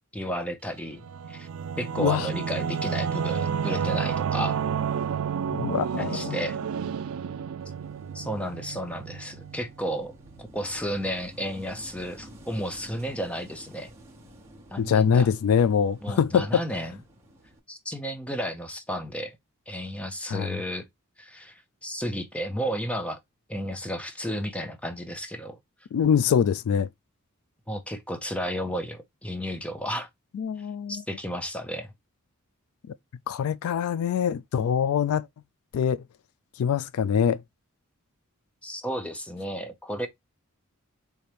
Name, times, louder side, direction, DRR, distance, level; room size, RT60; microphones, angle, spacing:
voice 1, 0.1-1.5 1.8-4.6 6.0-6.6 8.1-10.1 10.4-13.9 14.7-15.3 16.0-17.0 17.7-19.4 19.7-20.8 21.2-23.2 23.5-25.6 27.7-30.1 30.9-31.9 38.6-40.1, equal, 5° left, 0.6 m, -33 dB
Singing / Musical instrument, 0.9-10.1, right 7 dB, 70° right, 0.4 m, -30 dB
voice 2, 2.0-2.3 5.6-6.4 14.8-16.6 20.3-20.6 25.9-26.9 30.3-31.0 33.3-35.3 35.7-36.0 36.6-37.4, left 7 dB, 75° left, 0.3 m, -24 dB
Wind / Waves surf, 7.6-17.6, equal, 10° right, 1.0 m, -51 dB
4.2 x 3.5 x 3.4 m
head